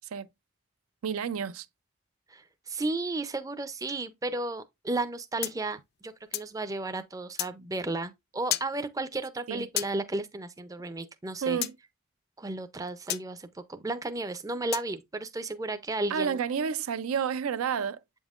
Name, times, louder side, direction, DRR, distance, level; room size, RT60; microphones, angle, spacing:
voice 1, 1.0-1.7 9.5-9.7 11.4-11.7 16.1-18.0, right 7 dB, 85° right, 0.4 m, -30 dB
voice 2, 2.3-11.6 12.4-16.4, right 2 dB, 15° right, 0.4 m, -34 dB
sound 1, 5.4-6.5 7.4-7.5 8.5-8.7 9.8-9.9 11.6-11.7 13.1-13.2 14.7-14.9, left 14 dB, 50° left, 0.3 m, -32 dB
7.9 x 5.3 x 2.4 m
head